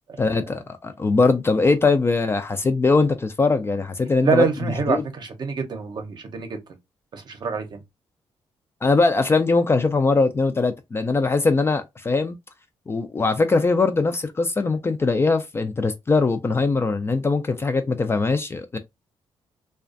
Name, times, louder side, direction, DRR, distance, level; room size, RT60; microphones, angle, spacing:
voice 1, 0.2-4.5 4.9-5.0 8.8-12.4 12.9-18.8, left 3 dB, 25° left, 0.3 m, -21 dB
voice 2, 4.2-6.6 7.1-7.8, right 5 dB, 50° right, 0.7 m, -26 dB
2.4 x 2.2 x 2.4 m
cardioid pair, 100°, 10 cm